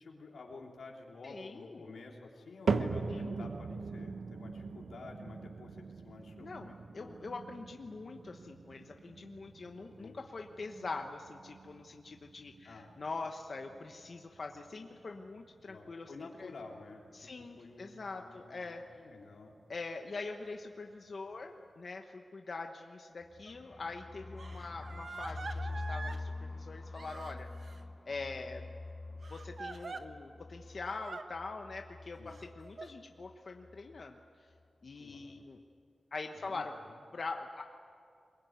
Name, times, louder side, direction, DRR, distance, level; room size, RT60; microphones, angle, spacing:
voice 1, 0.0-7.2 10.0-10.2 12.6-12.9 15.6-17.3 17.6-19.5 32.2-32.4 35.0-35.4 36.3-37.0, left 3 dB, 75° left, -1 dB, 3.0 m, -51 dB
voice 2, 1.2-1.8 3.1-3.5 6.4-16.1 16.4-16.5 17.1-18.8 19.7-27.5 28.1-28.7 29.3-34.2 34.8-35.6 36.1-36.7 37.1-37.6, left 3 dB, 45° left, 3 dB, 1.1 m, -43 dB
sound 1, 2.7-19.0 19.3-19.8 20.4-20.5 21.3-21.4, right 4 dB, 85° right, 1.1 m, -42 dB
sound 2, 23.2-33.0 33.2-33.3 33.6-34.1, left 2 dB, 20° left, 0.5 m, -45 dB
Crying sobbing, 23.5-23.6 24.4-26.2 26.9-27.8 29.2-30.0 30.9-31.2 32.3-32.9, right 4 dB, 50° right, 1.1 m, -45 dB
23.0 x 22.0 x 9.5 m, 2.4 s
wide cardioid pair, 175°, 0 cm